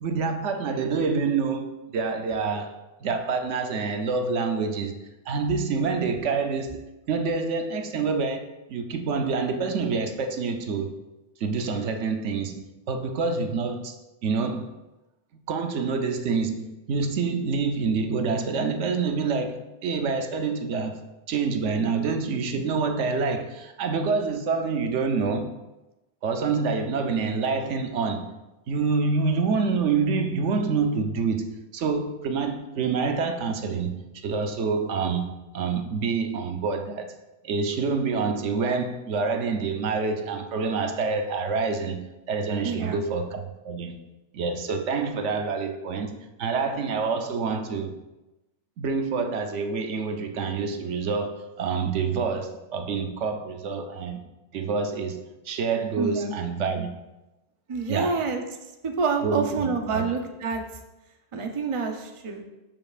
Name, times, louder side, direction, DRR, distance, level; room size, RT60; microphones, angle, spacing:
voice 1, 0.0-5.0 5.3-6.8 7.1-10.9 11.4-13.9 14.2-14.7 15.5-25.5 26.2-28.3 28.7-37.2 37.4-42.0 42.3-44.0 44.3-47.9 48.8-54.2 54.5-56.9 57.9-58.2 59.2-60.1, right 4 dB, 80° right, 1.0 m, -27 dB
voice 2, 42.6-43.0 56.0-56.3 57.7-58.4 58.8-60.6 61.3-62.4, right 4 dB, 35° right, 0.6 m, -27 dB
12.5 x 5.4 x 2.4 m
omnidirectional pair, 1.2 m